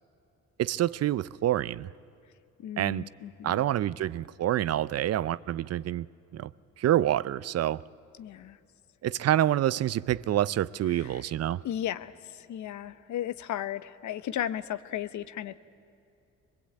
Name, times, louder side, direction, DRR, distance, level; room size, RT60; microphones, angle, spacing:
voice 1, 0.6-1.9 2.8-3.0 3.4-6.1 6.3-6.5 6.8-7.8 9.0-11.6, right 12 dB, 55° right, 0.5 m, -27 dB
voice 2, 2.6-3.7 8.2-8.6 10.9-11.3 11.6-15.6, left 11 dB, 70° left, 0.9 m, -35 dB
22.5 x 22.0 x 8.7 m
cardioid pair, 90°, 30 cm